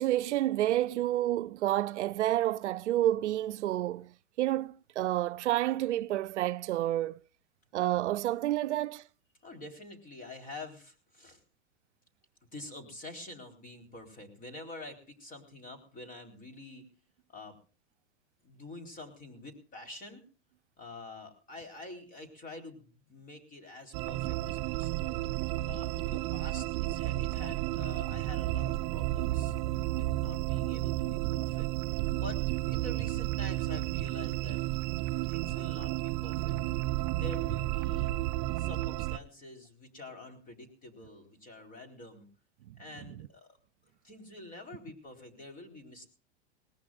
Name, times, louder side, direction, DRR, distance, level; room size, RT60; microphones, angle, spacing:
voice 1, 0.0-7.2 7.7-9.1, right 14 dB, 90° right, 0.6 m, -29 dB
voice 2, 9.4-11.4 12.5-16.9 17.3-17.6 18.4-20.2 20.8-25.2 25.6-29.5 29.9-34.6 35.3-38.1 38.6-42.3 42.8-43.6 44.0-46.1, left 2 dB, 25° left, 4.3 m, -47 dB
sound 1, 23.9-39.2, right 16 dB, 45° right, 0.6 m, -32 dB
20.5 x 18.5 x 2.5 m
hypercardioid pair, 125°, 34 cm